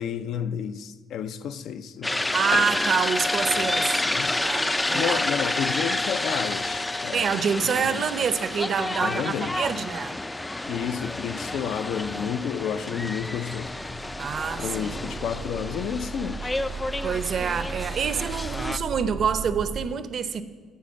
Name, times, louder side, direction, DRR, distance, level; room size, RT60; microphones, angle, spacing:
voice 1, 0.0-2.3 3.6-4.3 4.9-7.4 7.7-8.0 9.0-9.6 10.7-13.7 14.6-16.5, left 8 dB, 70° left, 0.5 m, -31 dB
sound 1, 2.0-18.8, left 2 dB, 10° left, 0.3 m, -29 dB
voice 2, 2.3-4.0 4.4-5.2 7.1-10.2 14.2-14.9 17.0-20.4, right 6 dB, 50° right, 0.6 m, -27 dB
Piano, 2.5-4.2, left 3 dB, 50° left, 1.2 m, -32 dB
sound 2, 13.5-19.9, right 4 dB, 85° right, 1.0 m, -37 dB
9.3 x 7.6 x 7.3 m
cardioid pair, 130°, 0 cm